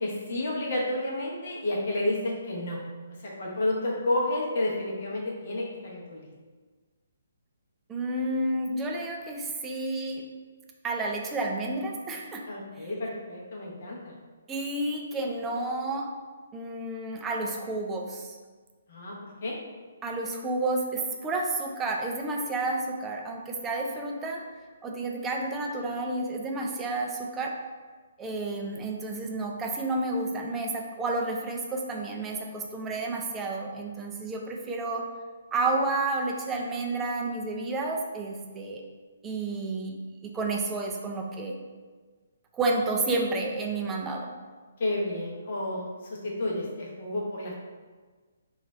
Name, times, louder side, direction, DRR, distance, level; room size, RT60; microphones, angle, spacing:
voice 1, 0.0-2.8 3.2-6.3 12.5-14.1 18.9-19.5 44.8-47.5, left 1 dB, 45° left, -3 dB, 0.8 m, -31 dB
voice 2, 7.9-10.3 10.8-12.4 12.8-12.9 14.5-16.1 16.5-18.4 20.0-24.4 24.8-27.5 28.2-35.1 35.5-38.8 39.2-40.0 40.2-41.6 42.5-44.3, right 2 dB, 15° right, 0 dB, 0.4 m, -30 dB
3.0 x 2.4 x 3.9 m, 1.4 s
figure-of-eight pair, 130°, 0 cm